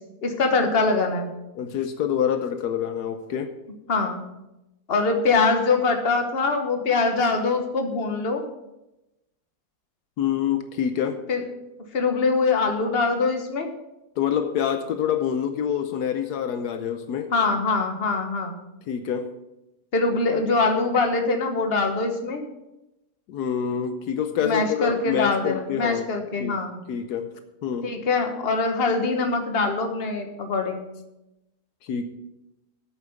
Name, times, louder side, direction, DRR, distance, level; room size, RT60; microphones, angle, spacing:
voice 1, 0.2-1.3 3.9-4.2 4.9-8.4 11.3-11.4 11.9-13.7 17.3-18.5 19.9-22.4 24.4-26.8 27.8-30.8, left 3 dB, 40° left, 5 dB, 1.4 m, -23 dB
voice 2, 1.5-3.5 10.2-11.2 14.2-17.3 18.9-19.3 23.3-26.1 26.4-26.6 26.9-27.3 27.6-27.9 31.8-32.1, left 8 dB, 75° left, 8 dB, 1.3 m, -26 dB
8.4 x 7.8 x 7.0 m, 0.94 s
omnidirectional pair, 1.7 m